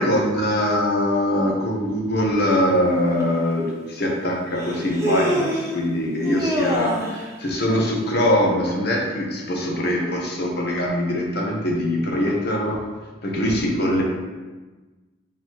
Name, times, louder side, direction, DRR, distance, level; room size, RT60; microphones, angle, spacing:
voice 1, 0.0-12.8 13.2-14.0, left 1 dB, 55° left, -1 dB, 0.8 m, -22 dB
Human voice, 3.2-3.3 4.6-5.8 6.2-7.2, right 1 dB, 15° right, 0.6 m, -25 dB
4.4 x 4.0 x 2.9 m, 1.2 s
head